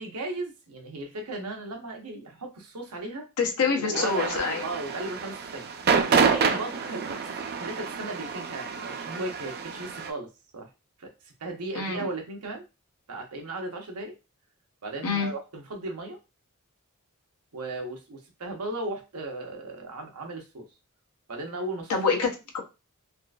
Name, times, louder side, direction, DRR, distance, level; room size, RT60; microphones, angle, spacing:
voice 1, 0.0-3.3 3.7-10.7 11.0-11.1 11.4-12.6 13.1-14.1 14.8-16.2 17.5-20.7 21.3-21.9, right 2 dB, 85° right, 3 dB, 0.9 m, -36 dB
voice 2, 3.4-4.7 11.7-12.1 15.0-15.3 21.9-22.6, left 5 dB, 85° left, 2 dB, 0.8 m, -26 dB
sound 1, 3.9-10.1, right 5 dB, 45° right, 0.5 m, -28 dB
3.7 x 2.4 x 2.3 m, 0.27 s
head